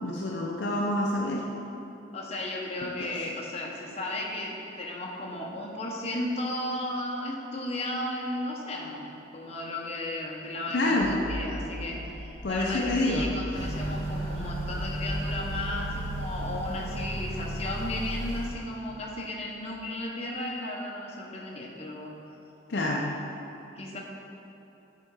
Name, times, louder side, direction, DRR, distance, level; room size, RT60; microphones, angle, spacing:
voice 1, 0.0-1.5 2.8-3.2 10.7-11.2 12.4-13.3 22.7-23.2, left 2 dB, 60° left, -2 dB, 0.6 m, -27 dB
voice 2, 2.1-22.1 23.7-24.0, left 1 dB, 30° left, -2 dB, 0.9 m, -34 dB
sound 1, 11.0-19.7, equal, ahead, 0.5 m, -40 dB
Motor vehicle (road) / Accelerating revving vroom, 13.5-18.5, right 1 dB, 30° right, 1.0 m, -34 dB
9.8 x 3.8 x 4.7 m, 2.9 s
head